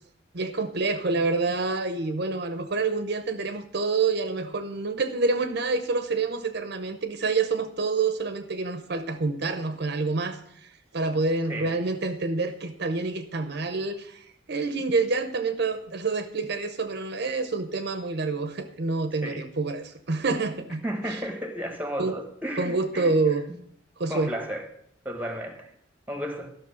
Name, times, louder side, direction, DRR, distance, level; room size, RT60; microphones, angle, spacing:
voice 1, 0.3-21.2 22.0-22.1 22.6-23.4 24.0-24.3, right 3 dB, 55° right, 0.8 m, -27 dB
voice 2, 20.8-23.1 24.1-24.6 25.0-25.7 26.1-26.5, equal, 10° right, 1.3 m, -33 dB
12.5 x 6.2 x 6.3 m
head